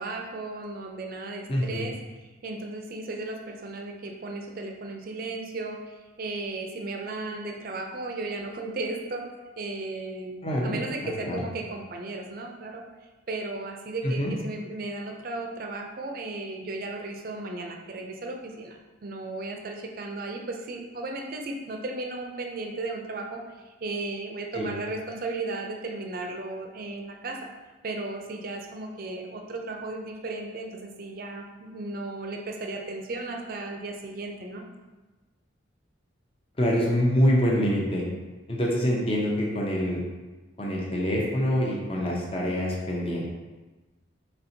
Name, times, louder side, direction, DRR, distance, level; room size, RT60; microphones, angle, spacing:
voice 1, 0.0-2.0 2.4-5.8 6.2-9.3 9.6-10.3 10.6-12.8 13.3-23.4 23.8-27.5 27.8-34.6, right 2 dB, 45° right, 3 dB, 0.5 m, -35 dB
voice 2, 1.5-1.8 10.4-10.8 11.3-11.4 14.0-14.3 24.5-24.7 36.6-38.0 38.5-40.0 40.6-43.2, equal, 30° left, -3 dB, 0.6 m, -25 dB
4.3 x 4.1 x 2.7 m, 1.2 s
head